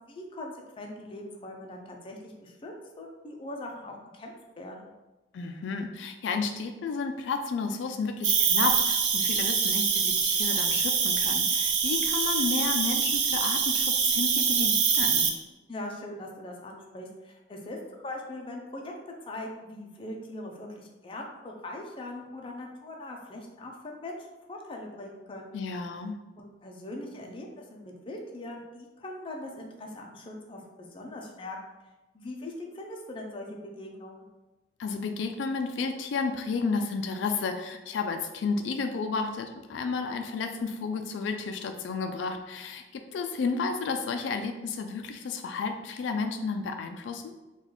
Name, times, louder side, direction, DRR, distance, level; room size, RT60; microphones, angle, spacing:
voice 1, 0.1-4.9 15.7-18.9 19.2-25.5 26.4-31.7 32.1-34.3, left 1 dB, 30° left, 1 dB, 0.5 m, -41 dB
voice 2, 5.3-15.3 25.5-26.1 34.8-47.3, left 4 dB, 90° left, 5 dB, 0.3 m, -32 dB
Cricket, 8.2-15.3, right 6 dB, 90° right, 0.5 m, -25 dB
3.9 x 2.3 x 3.0 m, 1.1 s
head